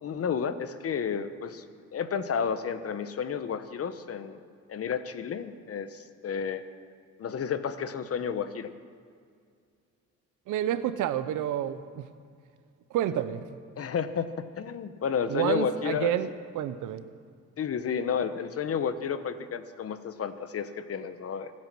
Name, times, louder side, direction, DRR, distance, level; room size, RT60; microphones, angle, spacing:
voice 1, 0.0-1.6 1.9-4.4 4.7-6.6 7.2-8.7 13.8-14.3 14.6-16.1 17.6-21.5, left 7 dB, 50° left, 11 dB, 1.1 m, -31 dB
voice 2, 10.5-12.1 12.9-13.5 15.3-17.1, right 11 dB, 85° right, 12 dB, 0.9 m, -29 dB
25.5 x 8.9 x 6.2 m, 2.2 s
cardioid pair, 90°, 30 cm